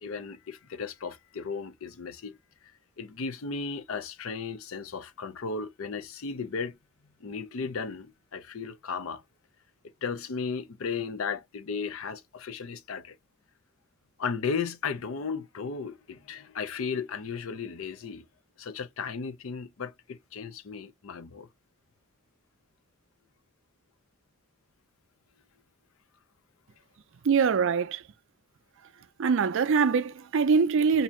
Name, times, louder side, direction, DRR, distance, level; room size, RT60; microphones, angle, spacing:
voice 1, 0.0-2.4 3.0-6.8 7.2-9.2 10.0-13.2 14.2-18.2 18.6-21.5, left 5 dB, 65° left, 0.5 m, -35 dB
voice 2, 27.2-28.0 29.2-31.0, right 5 dB, 60° right, 0.4 m, -23 dB
2.7 x 2.5 x 4.3 m
head